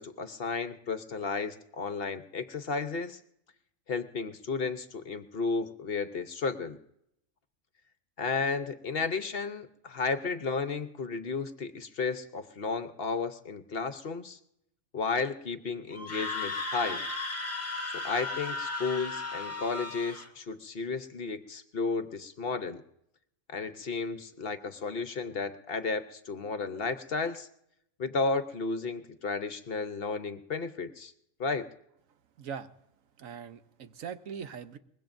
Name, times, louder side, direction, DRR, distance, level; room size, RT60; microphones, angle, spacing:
voice 1, 0.0-3.2 3.9-6.8 8.2-14.4 14.9-17.0 18.0-22.8 23.5-27.5 28.0-31.1 31.4-31.7, left 4 dB, 50° left, 10 dB, 0.9 m, -33 dB
Screaming, 15.9-20.3, left 3 dB, 10° left, 1.4 m, -35 dB
voice 2, 32.4-32.7 33.2-34.8, right 7 dB, 75° right, 11 dB, 1.2 m, -41 dB
23.5 x 21.0 x 2.6 m, 0.77 s
omnidirectional pair, 1.4 m